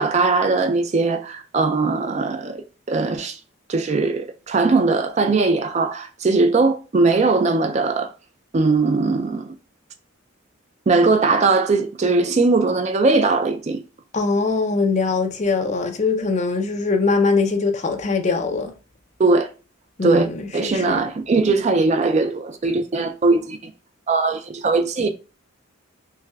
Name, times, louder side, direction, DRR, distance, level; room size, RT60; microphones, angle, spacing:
voice 1, 0.0-2.6 2.9-3.4 3.7-8.1 8.5-9.5 10.9-13.8 19.2-19.5 20.0-23.6 24.1-25.1, right 3 dB, 35° right, 0.3 m, -20 dB
voice 2, 14.1-18.7 20.0-21.1, left 4 dB, 35° left, 0.5 m, -22 dB
5.6 x 2.1 x 2.3 m
head